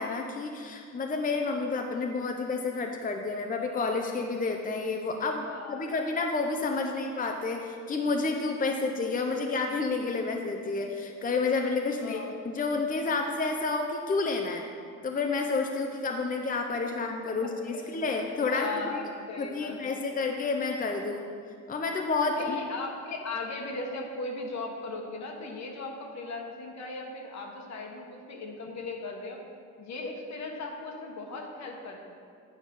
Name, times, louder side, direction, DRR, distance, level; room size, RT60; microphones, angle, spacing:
voice 1, 0.0-12.2 12.4-14.6 15.0-19.0 19.4-21.2 21.7-22.6, left 3 dB, 30° left, 3 dB, 0.6 m, -30 dB
voice 2, 5.4-6.1 6.8-7.0 12.0-12.5 17.7-17.8 18.5-20.0 22.3-29.4 29.8-32.0, left 3 dB, 65° left, 1 dB, 1.4 m, -38 dB
9.4 x 4.8 x 5.3 m, 2.3 s
cardioid pair, 95°, 30 cm